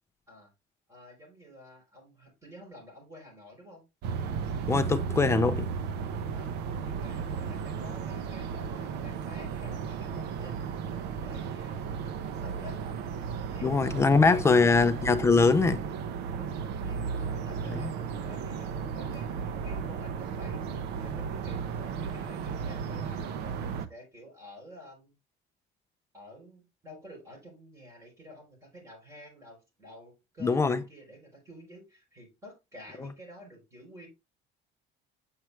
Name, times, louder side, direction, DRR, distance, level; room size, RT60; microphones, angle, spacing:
voice 1, 0.9-3.8 6.3-6.5 6.8-12.8 13.5-14.7 16.3-20.6 21.0-25.1 26.1-34.1, left 1 dB, 15° right, 3.6 m, -50 dB
sound 1, 4.0-23.9, right 6 dB, 65° right, 0.8 m, -34 dB
voice 2, 4.7-5.7 13.6-15.8 17.8-17.9 30.4-30.8 33.0-33.1, left 4 dB, 15° left, 0.5 m, -22 dB
7.5 x 4.7 x 3.2 m
cardioid pair, 170°, 19 cm